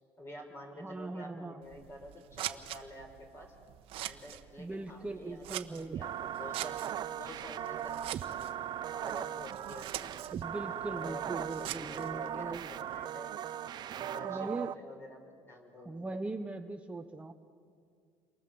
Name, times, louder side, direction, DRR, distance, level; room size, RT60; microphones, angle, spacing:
voice 1, 0.2-3.5 4.0-6.8 7.1-10.1 10.7-13.3 13.9-16.0, left 1 dB, 25° left, 3 dB, 5.4 m, -49 dB
voice 2, 0.8-1.6 4.6-6.0 10.3-12.7 14.2-14.7 15.8-17.3, right 2 dB, 10° right, 5 dB, 0.9 m, -40 dB
Scissors, 1.6-13.1, right 14 dB, 65° right, 1.2 m, -45 dB
sound 1, 5.9-14.7, right 10 dB, 45° right, 0.7 m, -38 dB
29.0 x 23.5 x 7.8 m, 2.3 s
cardioid pair, 130°, 10 cm